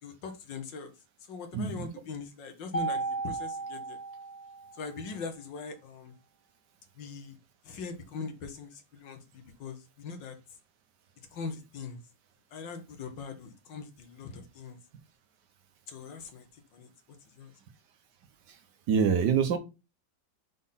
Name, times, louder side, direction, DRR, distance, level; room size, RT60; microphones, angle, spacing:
voice 1, 0.0-0.9 1.3-4.0 4.8-6.1 7.0-7.4 7.6-10.4 11.3-12.0 12.5-14.8 15.9-16.5 16.7-16.9 17.4-17.5, left 4 dB, 80° left, 1.9 m, -41 dB
Mallet percussion, 2.7-5.0, right 3 dB, 30° left, 0.9 m, -35 dB
voice 2, 18.9-19.6, right 6 dB, 70° right, 1.4 m, -25 dB
5.1 x 3.9 x 5.6 m
omnidirectional pair, 2.0 m